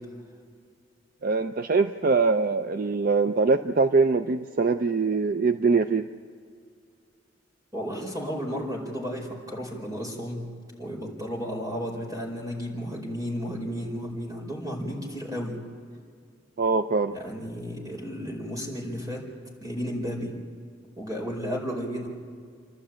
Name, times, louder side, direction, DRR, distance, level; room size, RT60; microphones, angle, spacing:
voice 1, 1.2-6.1 16.6-17.1, right 4 dB, 50° right, 9 dB, 0.5 m, -23 dB
voice 2, 7.7-10.5 10.8-15.6 17.1-19.2 19.6-20.3 21.0-22.1, equal, 20° right, -1 dB, 4.7 m, -33 dB
29.5 x 12.0 x 8.7 m, 2.1 s
head